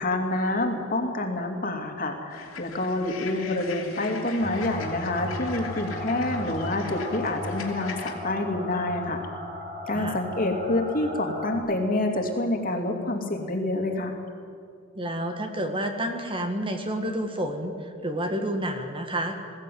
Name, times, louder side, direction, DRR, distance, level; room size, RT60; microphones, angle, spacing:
voice 1, 0.0-9.2 9.9-14.2, left 2 dB, 45° left, 3 dB, 2.7 m, -27 dB
sound 1, 2.3-8.1, left 5 dB, 75° left, 3.0 m, -41 dB
sound 2, 4.4-11.6, left 1 dB, 40° right, 5.2 m, -36 dB
voice 2, 15.0-19.4, right 1 dB, 25° right, 5 dB, 1.7 m, -29 dB
21.5 x 15.0 x 9.4 m, 2.3 s
head